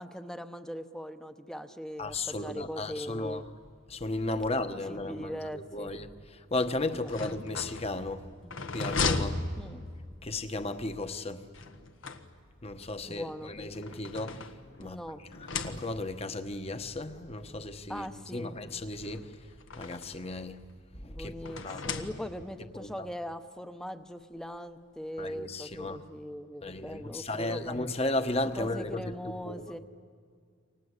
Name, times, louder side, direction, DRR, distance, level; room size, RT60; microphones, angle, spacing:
voice 1, 0.0-3.4 4.5-5.9 7.0-7.3 8.4-8.6 9.6-9.8 13.1-13.5 14.8-15.2 17.9-18.6 21.0-27.7 28.6-29.8, equal, 5° left, 0.9 m, -40 dB
voice 2, 2.0-3.4 3.9-8.2 8.7-9.4 10.2-11.4 12.6-14.5 14.8-15.0 15.3-19.3 19.8-20.6 21.0-21.8 22.7-22.9 25.2-26.0 26.6-29.1 29.4-29.8, left 2 dB, 30° left, 1.2 m, -35 dB
sound 1, 7.1-10.2 11.5-12.7 13.5-14.9 15.3-16.2 17.2-17.3 17.6-17.7 18.9-20.2 21.4-22.6, left 4 dB, 85° left, 1.4 m, -36 dB
28.5 x 25.0 x 8.3 m
head